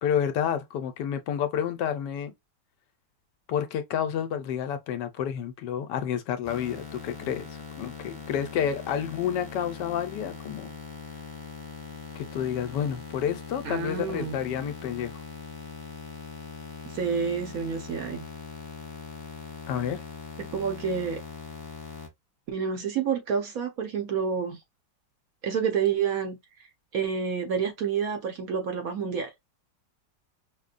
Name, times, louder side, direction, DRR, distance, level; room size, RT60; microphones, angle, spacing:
voice 1, 0.0-2.3 3.5-7.5 7.8-10.7 12.1-15.1 19.7-20.0, left 9 dB, 75° left, 1.2 m, -29 dB
sound 1, 6.4-22.1, left 5 dB, 30° left, 0.4 m, -41 dB
voice 2, 13.6-14.4 16.8-18.3 20.4-21.2 22.5-24.6 25.4-26.7 26.9-29.3, right 6 dB, 65° right, 1.1 m, -29 dB
5.1 x 2.2 x 2.4 m
omnidirectional pair, 1.9 m